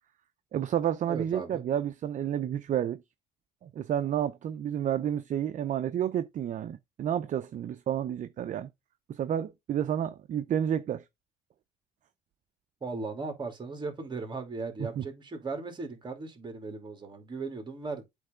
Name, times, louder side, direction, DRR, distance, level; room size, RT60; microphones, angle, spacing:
voice 1, 0.5-3.0 3.6-8.7 9.1-11.0 15.0-15.1, right 10 dB, 50° right, 0.6 m, -30 dB
voice 2, 1.1-1.6 12.8-18.0, right 3 dB, 25° right, 2.7 m, -37 dB
8.2 x 3.4 x 5.1 m
cardioid pair, 110°, 17 cm